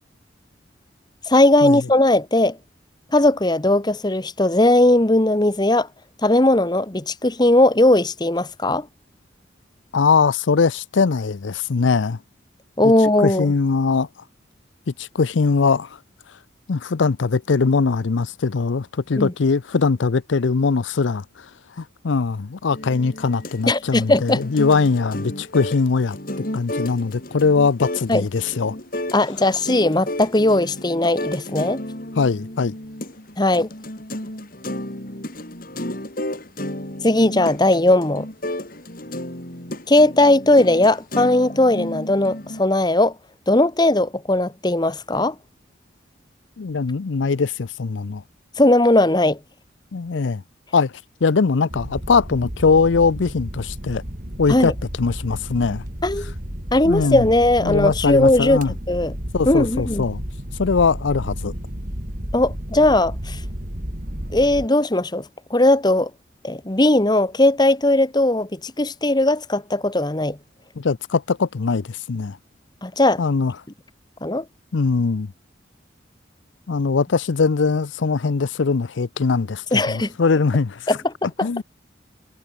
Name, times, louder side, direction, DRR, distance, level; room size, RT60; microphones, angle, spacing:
voice 1, 1.3-2.6 3.1-5.9 6.2-8.9 12.8-13.5 19.2-19.3 23.7-24.4 28.1-28.2 29.1-31.8 33.4-33.7 37.0-38.3 39.9-43.1 43.5-45.3 48.6-49.4 54.5-54.7 56.0-56.3 56.7-58.6 58.9-59.1 59.5-60.0 62.3-63.4 64.3-65.2 65.5-66.1 66.4-70.4 72.8-73.2 74.2-74.4 79.7-80.1 80.9-81.1 81.4-81.5, left 1 dB, 20° left, 1.1 m, -18 dB
voice 2, 9.9-12.2 12.8-12.9 13.2-14.1 14.9-16.0 16.7-21.5 21.8-28.8 32.2-32.8 46.6-48.2 49.9-50.4 50.7-50.9 51.2-54.0 54.4-54.7 55.0-55.8 56.9-57.3 57.6-58.7 59.3-60.2 60.6-61.5 70.8-72.4 73.2-73.5 74.7-75.3 76.7-81.0 81.4-81.6, left 4 dB, 75° left, 0.6 m, -21 dB
sound 1, 22.7-42.6, left 1 dB, 50° left, 4.9 m, -32 dB
sound 2, 51.7-64.7, equal, 45° right, 4.0 m, -32 dB
head